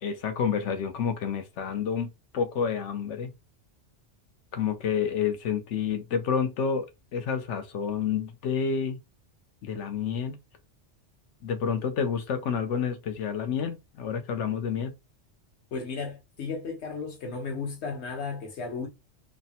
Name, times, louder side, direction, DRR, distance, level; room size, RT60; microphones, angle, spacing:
voice 1, 0.0-3.3 4.5-9.0 9.6-10.4 11.4-14.9, left 7 dB, 90° left, 1.0 m, -29 dB
voice 2, 15.7-18.9, left 4 dB, 70° left, 1.2 m, -34 dB
3.3 x 2.1 x 2.8 m
omnidirectional pair, 1.2 m